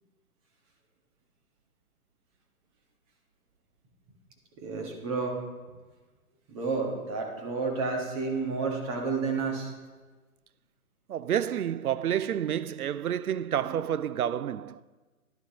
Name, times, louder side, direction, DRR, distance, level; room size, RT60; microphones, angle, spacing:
voice 1, 4.6-5.4 6.5-9.7 13.6-13.7, right 4 dB, 25° right, 1.5 m, -31 dB
voice 2, 11.1-14.8, right 10 dB, 75° right, 0.5 m, -29 dB
11.0 x 11.0 x 3.0 m
figure-of-eight pair, 130°, 44 cm